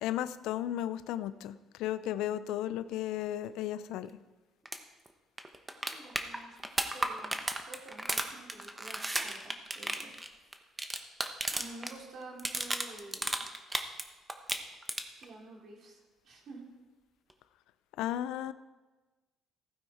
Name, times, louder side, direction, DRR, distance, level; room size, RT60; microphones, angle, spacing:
voice 1, 0.0-4.1 18.0-18.5, left 12 dB, 85° left, 15 dB, 0.4 m, -34 dB
sound 1, 4.6-4.8 5.1-5.2 5.4-11.9 12.2-14.0 14.3-15.2 17.3-17.4, right 1 dB, 10° right, 1.0 m, -34 dB
voice 2, 5.9-6.6 6.9-10.1 11.5-13.4 15.2-16.6, right 2 dB, 55° right, 0 dB, 2.8 m, -50 dB
15.5 x 9.2 x 4.3 m, 1.2 s
cardioid pair, 100°, 0 cm